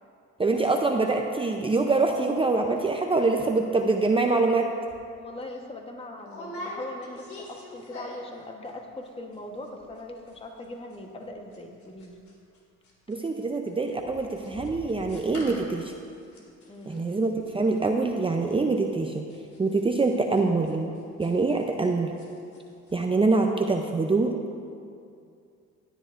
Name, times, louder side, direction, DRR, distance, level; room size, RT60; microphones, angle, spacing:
voice 1, 0.4-4.7 13.1-15.9 16.9-19.2 19.6-20.9 21.2-22.1 22.9-24.4, right 3 dB, 20° right, 2 dB, 0.6 m, -24 dB
sound 1, 4.9-5.0 5.4-5.6 6.2-8.4 8.7-9.1 9.3-9.4 9.6-10.0 10.3-12.6 12.8-21.9 22.2-22.6 22.9-23.0, left 1 dB, 70° left, 2.5 m, -44 dB
voice 2, 5.2-12.1 16.7-17.0, left 2 dB, 20° left, 2 dB, 1.2 m, -40 dB
16.5 x 10.0 x 2.5 m, 2.4 s
cardioid pair, 90°, 30 cm